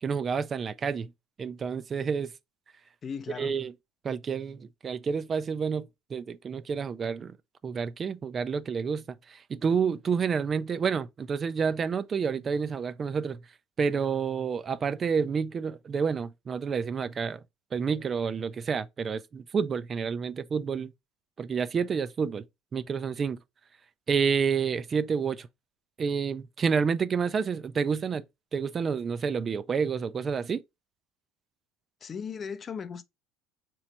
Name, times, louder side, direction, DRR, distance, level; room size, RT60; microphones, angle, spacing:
voice 1, 0.0-1.1 1.4-2.3 3.4-3.7 4.0-7.4 7.6-13.4 13.8-17.4 17.7-20.9 21.4-22.4 22.7-23.4 24.1-25.5 26.0-28.2 28.5-30.6, right 6 dB, 35° right, 0.3 m, -29 dB
voice 2, 3.0-3.5 32.0-33.0, left 6 dB, 35° left, 0.5 m, -37 dB
3.2 x 3.0 x 4.2 m
hypercardioid pair, 75°, 0 cm